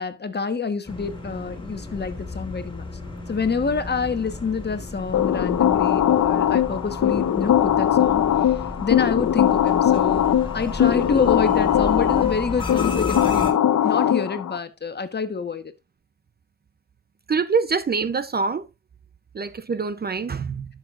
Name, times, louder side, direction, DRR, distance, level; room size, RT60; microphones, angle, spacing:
voice 1, 0.0-2.8 3.3-8.3 8.8-10.3 10.5-15.7, left 5 dB, 35° left, 1.3 m, -27 dB
sound 1, 0.8-13.5, left 2 dB, 15° left, 3.1 m, -34 dB
sound 2, 5.1-14.6, left 10 dB, 60° left, 0.8 m, -20 dB
voice 2, 17.3-18.7 19.3-20.7, right 5 dB, 30° right, 0.6 m, -25 dB
11.5 x 6.6 x 2.5 m
cardioid pair, 95°, 31 cm